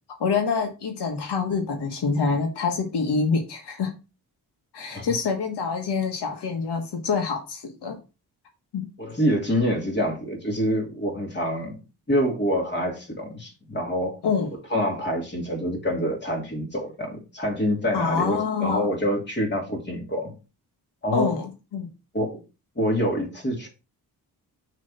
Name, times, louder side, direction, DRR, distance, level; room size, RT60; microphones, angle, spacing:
voice 1, 0.2-3.9 4.7-8.0 8.7-8.9 14.2-14.5 17.9-18.9 21.1-21.9, left 5 dB, 85° left, 1.3 m, -26 dB
voice 2, 9.0-11.7 12.1-14.2 14.7-20.3 21.0-21.3 22.1-22.4 22.8-23.7, equal, 25° left, 2.8 m, -26 dB
6.5 x 3.3 x 5.4 m
wide cardioid pair, 120°, 39 cm